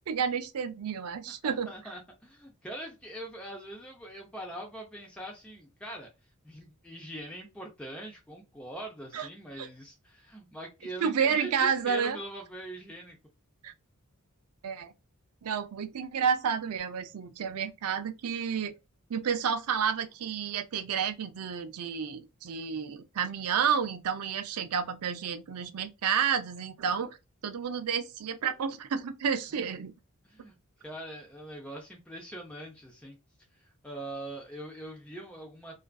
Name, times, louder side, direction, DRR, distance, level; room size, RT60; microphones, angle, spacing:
voice 1, 0.1-1.7 9.1-9.3 9.6-9.7 11.0-12.2 13.6-13.7 14.6-14.9 15.4-18.7 19.1-27.1 27.4-29.9, right 7 dB, 85° right, 0.5 m, -30 dB
voice 2, 1.4-6.1 6.4-13.2 30.2-33.2 33.6-35.7, right 1 dB, 5° left, 0.5 m, -42 dB
2.4 x 2.3 x 2.2 m
head